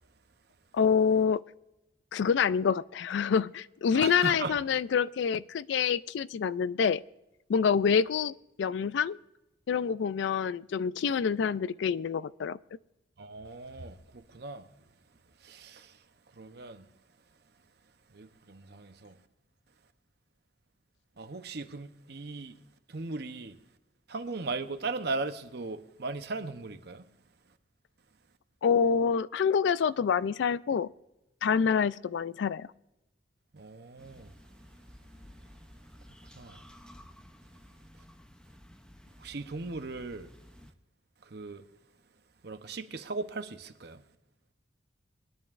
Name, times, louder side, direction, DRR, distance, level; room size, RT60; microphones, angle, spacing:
voice 1, 0.7-1.4 2.1-7.0 7.5-9.2 9.7-12.6 28.6-30.9 31.4-32.7, left 6 dB, 65° left, 0.3 m, -27 dB
voice 2, 3.9-4.6 13.2-14.7 15.4-16.0 16.4-16.9 18.1-19.2 21.2-22.6 22.9-23.6 24.1-27.0 33.5-34.3 36.4-36.6 39.2-40.3 41.2-41.7 42.4-44.0, right 3 dB, 55° right, 0.8 m, -38 dB
sound 1, 34.0-40.7, equal, 5° left, 0.6 m, -53 dB
21.5 x 10.5 x 2.5 m
head